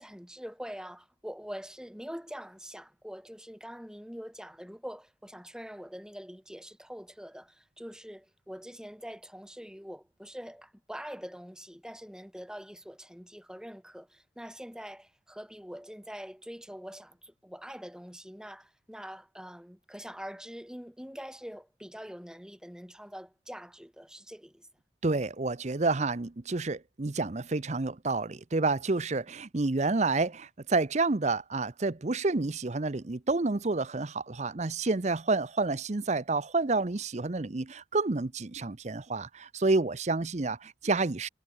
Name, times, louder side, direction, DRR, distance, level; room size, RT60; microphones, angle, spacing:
voice 1, 0.0-24.7, equal, 5° right, 7.9 m, -44 dB
voice 2, 25.0-41.3, right 3 dB, 35° right, 0.7 m, -29 dB
head